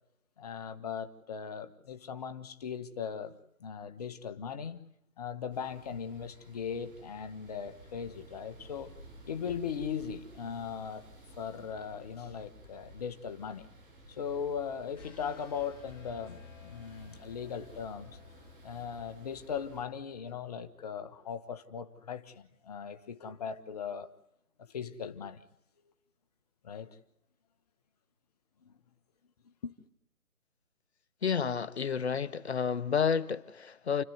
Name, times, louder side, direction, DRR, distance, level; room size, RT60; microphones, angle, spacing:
voice 1, 0.4-4.8 5.2-8.9 9.3-11.0 11.3-13.7 14.1-18.2 18.6-24.1 24.6-25.4 26.6-27.0 28.6-28.7 29.4-29.7, left 7 dB, 25° left, 1.6 m, -39 dB
sound 1, 5.5-19.9, right 1 dB, 35° right, 6.2 m, -54 dB
sound 2, 14.9-21.0, left 8 dB, 10° left, 5.3 m, -58 dB
voice 2, 31.2-34.0, left 6 dB, 45° left, 1.3 m, -30 dB
29.5 x 14.0 x 9.6 m
figure-of-eight pair, 150°, 43 cm